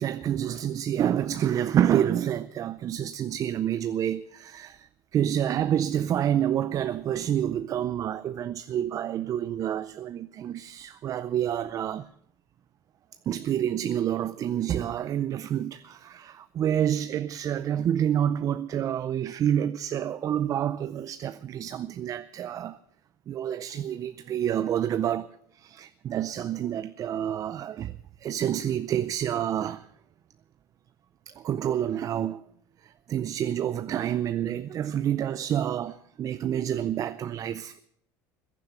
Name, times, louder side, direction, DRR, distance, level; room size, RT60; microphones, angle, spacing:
voice 1, 0.0-4.9 5.1-12.1 13.3-22.8 23.3-25.3 25.5-29.8 31.3-32.4 32.8-37.8, right 10 dB, 40° right, 0.5 m, -28 dB
15.5 x 11.0 x 6.8 m
supercardioid pair, 110°, 9 cm